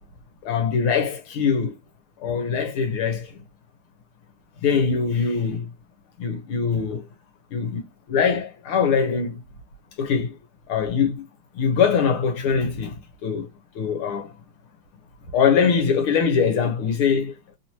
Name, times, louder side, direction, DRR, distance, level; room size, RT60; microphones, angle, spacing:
voice 1, 0.4-1.8 2.2-3.3 4.6-5.7 6.2-7.1 7.5-9.4 10.0-10.4 10.7-11.3 11.5-13.5 13.8-14.3 15.3-17.6, left 6 dB, 85° left, 1.9 m, -22 dB
3.9 x 2.8 x 2.9 m
omnidirectional pair, 2.3 m